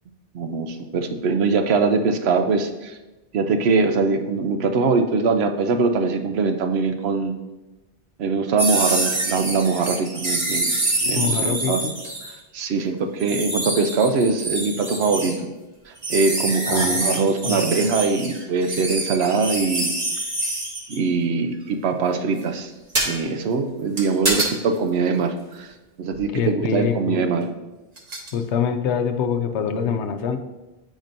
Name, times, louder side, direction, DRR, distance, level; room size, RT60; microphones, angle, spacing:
voice 1, 0.3-3.0 3.3-7.4 8.2-10.7 11.0-11.8 12.5-15.5 16.1-19.9 20.9-22.7 23.1-25.7 26.0-27.5, right 4 dB, 70° right, 7 dB, 0.9 m, -22 dB
sound 1, 8.6-12.3 13.2-15.4 16.0-21.0 23.0-23.1 24.0-24.5 26.1-26.2 28.0-28.3, right 2 dB, 40° right, 1.1 m, -26 dB
voice 2, 11.1-11.9 16.7-17.0 17.5-17.6 26.3-27.2 28.3-30.4, left 7 dB, 85° left, 6 dB, 0.9 m, -24 dB
8.8 x 5.1 x 2.6 m, 1.1 s
omnidirectional pair, 1.1 m